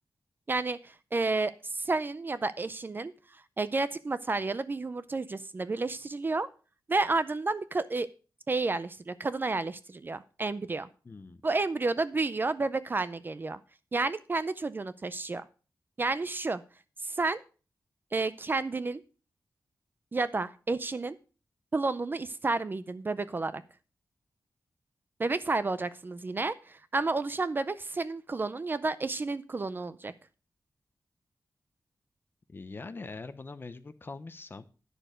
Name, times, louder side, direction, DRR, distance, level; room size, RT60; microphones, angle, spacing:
voice 1, 0.5-6.5 6.9-8.1 8.5-10.9 11.4-13.6 13.9-15.4 16.0-16.6 17.0-17.4 18.1-19.0 20.1-21.2 21.7-23.6 25.2-30.1, right 3 dB, 30° right, 14 dB, 0.4 m, -31 dB
voice 2, 11.0-11.4 32.5-34.6, left 3 dB, 30° left, 12 dB, 0.6 m, -43 dB
10.0 x 6.8 x 4.9 m, 0.36 s
wide cardioid pair, 180°, 7 cm